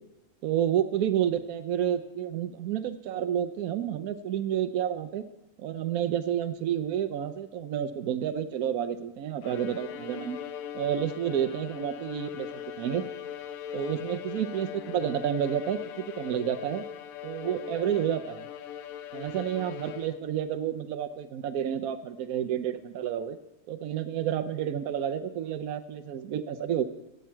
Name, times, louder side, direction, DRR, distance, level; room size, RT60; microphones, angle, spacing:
voice 1, 0.4-5.2 5.6-10.4 10.7-13.1 13.7-16.8 17.2-18.5 19.1-23.4 23.7-26.8, right 9 dB, 80° right, 10 dB, 1.2 m, -30 dB
Bowed string instrument, 9.4-20.4, left 9 dB, 75° left, 1.1 m, -40 dB
16.0 x 8.2 x 4.5 m, 0.98 s
omnidirectional pair, 1.5 m